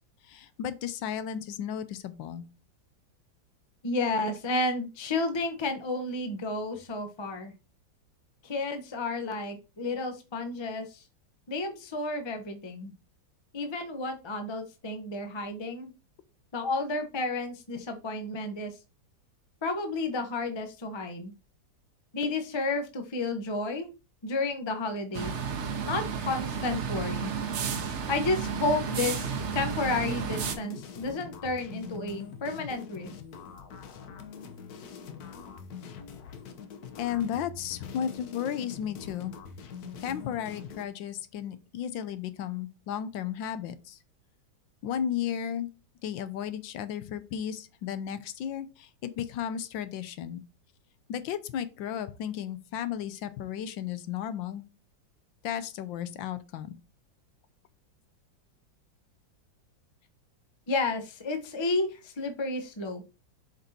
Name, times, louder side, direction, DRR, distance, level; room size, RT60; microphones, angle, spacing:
voice 1, 0.2-2.4 37.0-39.4 40.0-44.0 44.8-45.7 46.0-50.4 51.1-54.6 55.4-56.8, left 9 dB, 80° left, 1.4 m, -34 dB
voice 2, 3.8-7.5 8.4-11.0 11.5-12.9 13.5-15.9 16.5-18.8 19.6-21.3 22.1-23.9 24.2-25.3 25.8-27.3 28.1-33.1 60.7-63.0, left 2 dB, 35° left, 0.4 m, -31 dB
sound 1, 25.1-30.5, right 6 dB, 65° right, 0.7 m, -32 dB
sound 2, 28.6-40.9, left 6 dB, 60° left, 1.2 m, -44 dB
7.3 x 5.2 x 2.8 m
omnidirectional pair, 2.1 m